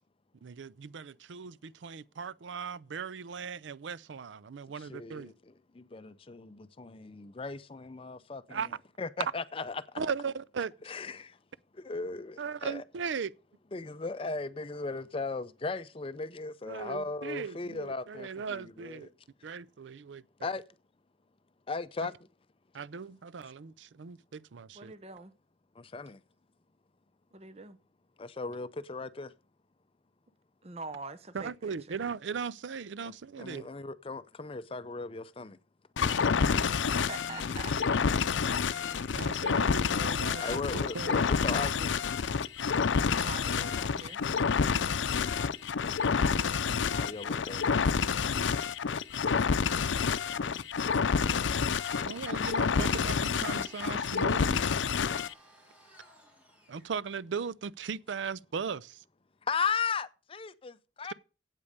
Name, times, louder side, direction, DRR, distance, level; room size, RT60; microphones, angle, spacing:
voice 1, 0.4-5.3 8.5-8.8 10.0-10.7 12.4-13.3 16.7-19.1 19.4-20.2 22.7-24.9 31.3-33.7 39.1-41.3 52.0-54.6 56.7-59.0, right 6 dB, 80° right, 0.5 m, -38 dB
voice 2, 4.8-8.7 9.0-10.0 10.8-11.4 11.7-12.8 13.7-19.1 20.4-20.6 21.7-22.1 25.7-26.2 28.2-29.3 33.0-35.6 40.4-42.0 46.5-48.0 59.4-61.1, left 4 dB, 30° left, 0.5 m, -37 dB
voice 3, 24.7-25.3 27.3-27.8 30.6-31.7 37.0-37.8 43.2-44.2, right 3 dB, 35° right, 0.7 m, -44 dB
sound 1, 36.0-55.3, left 6 dB, 85° left, 0.5 m, -28 dB
sound 2, 36.1-41.5, left 3 dB, 50° left, 0.8 m, -49 dB
Domestic sounds home sounds, 51.1-57.0, equal, 10° right, 4.7 m, -58 dB
8.6 x 8.3 x 6.5 m
head